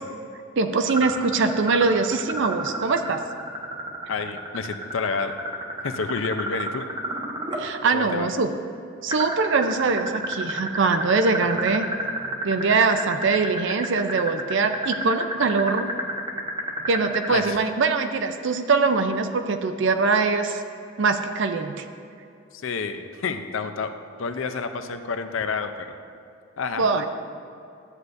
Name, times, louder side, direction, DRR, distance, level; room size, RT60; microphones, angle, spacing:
voice 1, 0.6-3.2 7.6-8.5 9.0-11.9 12.4-15.9 16.9-20.6 21.0-21.8 26.8-27.1, right 4 dB, 60° right, 7 dB, 0.4 m, -22 dB
sound 1, 0.9-7.6 9.1-17.4, right 1 dB, 20° right, 0.9 m, -30 dB
voice 2, 4.1-5.3 5.8-6.9 7.9-8.3 17.3-17.6 22.5-23.9 24.2-25.9 26.6-27.1, left 5 dB, 65° left, 8 dB, 0.5 m, -29 dB
13.0 x 8.1 x 2.6 m, 2.5 s
head